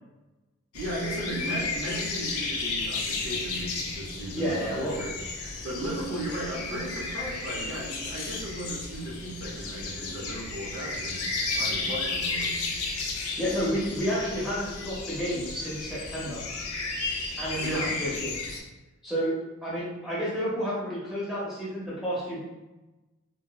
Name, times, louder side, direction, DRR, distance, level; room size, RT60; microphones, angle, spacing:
sound 1, 0.7-18.6, left 3 dB, 75° left, 0.4 m, -33 dB
voice 1, 0.7-5.1 5.6-12.6 17.6-18.0, right 1 dB, 55° right, -4 dB, 0.6 m, -36 dB
voice 2, 4.3-4.9 13.4-16.4 17.4-18.3 19.0-19.3 19.6-22.4, equal, ahead, -8 dB, 0.6 m, -30 dB
2.9 x 2.0 x 2.2 m, 1.1 s
head